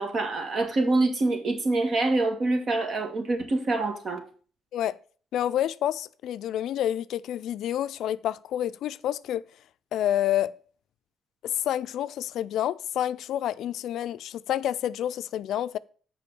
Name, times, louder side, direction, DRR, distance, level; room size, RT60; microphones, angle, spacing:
voice 1, 0.0-4.2, right 2 dB, 50° right, 1.9 m, -25 dB
voice 2, 5.3-9.4 9.9-10.5 11.4-15.8, left 11 dB, 80° left, 0.3 m, -28 dB
6.8 x 5.1 x 6.9 m
cardioid pair, 90°, 0 cm